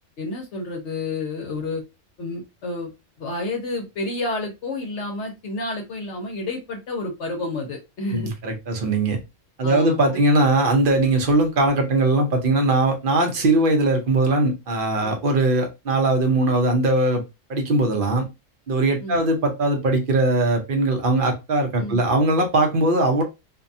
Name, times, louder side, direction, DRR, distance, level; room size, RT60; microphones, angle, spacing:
voice 1, 0.2-1.8 2.2-2.9 3.2-8.3 9.6-10.2 15.0-15.1 19.0-19.2 21.8-22.0, left 2 dB, 65° left, 1.0 m, -30 dB
voice 2, 8.1-9.2 9.6-17.2 17.5-18.2 18.7-23.2, right 2 dB, 50° right, 0.8 m, -20 dB
2.6 x 2.2 x 2.6 m
omnidirectional pair, 1.3 m